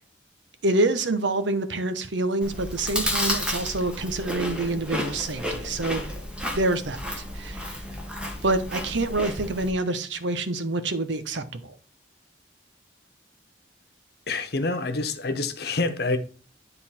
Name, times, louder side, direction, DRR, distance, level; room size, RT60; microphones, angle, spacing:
voice 1, 0.6-6.1 6.5-7.0 7.3-7.8 8.4-11.7, right 2 dB, 75° right, 1.0 m, -27 dB
Chewing mastication, 2.4-9.7, equal, 5° right, 1.3 m, -32 dB
voice 2, 14.3-16.2, left 3 dB, 55° left, 1.1 m, -27 dB
10.0 x 4.0 x 4.3 m
head